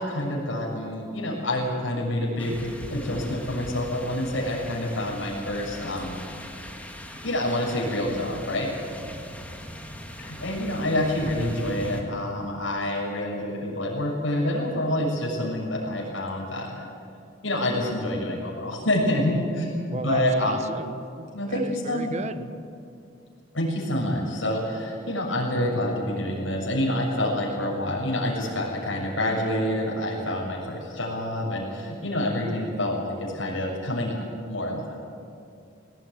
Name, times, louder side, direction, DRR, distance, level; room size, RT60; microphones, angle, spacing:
voice 1, 0.0-6.2 7.1-8.7 10.1-16.8 17.4-20.6 21.3-22.2 23.5-34.9, left 1 dB, 85° left, -3 dB, 6.7 m, -27 dB
sound 1, 2.4-12.0, equal, 10° left, 2.0 m, -39 dB
voice 2, 19.9-22.6, right 3 dB, 35° right, 11 dB, 1.1 m, -35 dB
21.5 x 18.5 x 9.4 m, 2.5 s
head